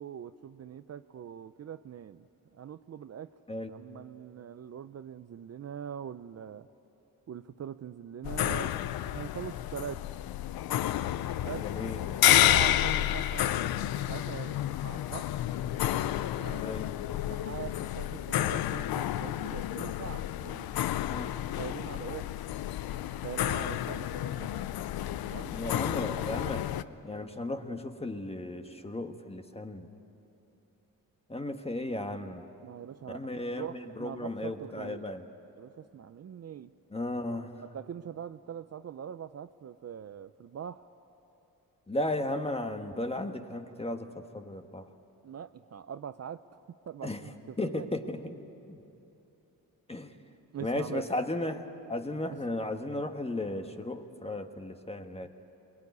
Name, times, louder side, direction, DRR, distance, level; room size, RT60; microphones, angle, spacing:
voice 1, 0.0-2.3 2.6-3.3 3.7-6.7 7.3-10.0 11.4-11.7 12.2-13.7 14.1-15.4 16.3-16.6 17.2-20.8 21.6-22.3 23.2-24.6 25.2-25.5 32.6-35.1 35.5-36.7 37.6-40.9 45.2-47.9 50.5-51.0 52.3-52.4, right 9 dB, 45° right, 12 dB, 0.6 m, -42 dB
sound 1, 8.2-26.8, left 12 dB, 85° left, 0.6 m, -30 dB
voice 2, 11.6-12.0 16.6-16.9 21.1-21.3 25.5-26.7 27.0-29.9 31.3-32.5 33.1-35.2 36.9-37.5 41.9-44.9 47.0-47.2 47.6-48.8 49.9-50.1 50.6-55.3, left 1 dB, 15° left, 6 dB, 1.4 m, -35 dB
22.5 x 21.0 x 9.5 m, 2.9 s
cardioid pair, 95°, 35 cm